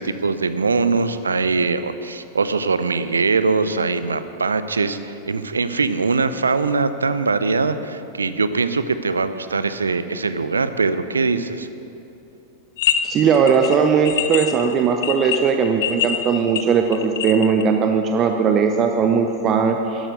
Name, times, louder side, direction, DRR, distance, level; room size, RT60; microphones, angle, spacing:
voice 1, 0.0-11.7, right 4 dB, 75° right, 12 dB, 0.6 m, -22 dB
sound 1, 12.8-13.0 13.3-17.6, left 10 dB, 55° left, 0.8 m, -24 dB
voice 2, 13.0-20.1, right 6 dB, 30° right, 5 dB, 0.8 m, -18 dB
12.5 x 11.5 x 6.5 m, 2.8 s
figure-of-eight pair, 90°, 0 cm